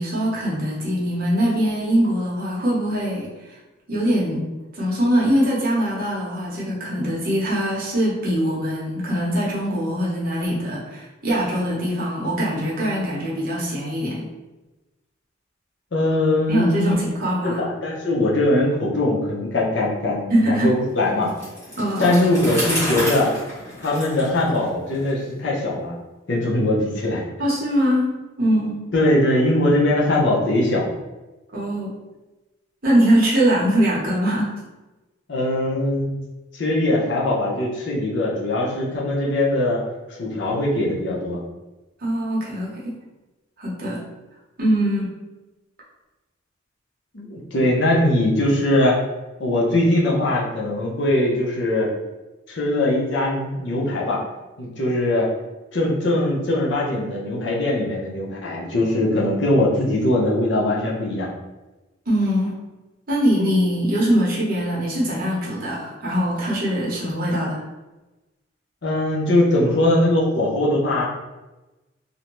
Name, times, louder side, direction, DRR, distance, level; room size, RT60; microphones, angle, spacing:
voice 1, 0.0-3.3 3.9-4.4 4.7-14.2 16.5-17.6 20.3-20.7 21.8-22.2 27.4-28.1 28.4-28.8 31.5-32.0 32.8-34.5 42.0-42.9 43.6-44.0 44.6-45.1 62.1-62.5 63.1-67.6, equal, 45° right, -5 dB, 0.8 m, -22 dB
voice 2, 15.9-16.9 17.4-21.3 22.0-23.3 23.8-26.0 26.3-27.2 28.9-30.9 35.3-36.1 36.5-39.8 40.1-41.4 47.1-49.0 49.4-51.9 52.5-54.2 54.6-55.3 55.7-61.3 68.8-71.1, left 1 dB, 60° left, -4 dB, 0.6 m, -21 dB
Bicycle, 21.3-25.1, equal, 15° left, 0.9 m, -29 dB
2.6 x 2.1 x 3.0 m, 1.1 s
head